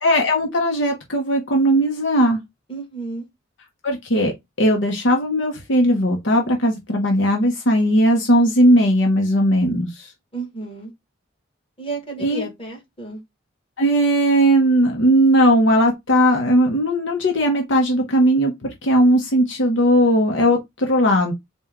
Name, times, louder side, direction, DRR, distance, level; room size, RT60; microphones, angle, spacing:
voice 1, 0.0-2.4 3.8-4.3 4.6-10.1 12.2-12.5 13.8-21.3, equal, 70° left, 0.8 m, -18 dB
voice 2, 2.7-3.3 10.3-10.9 11.8-13.2, right 3 dB, 25° left, 1.4 m, -32 dB
4.4 x 2.2 x 3.5 m
head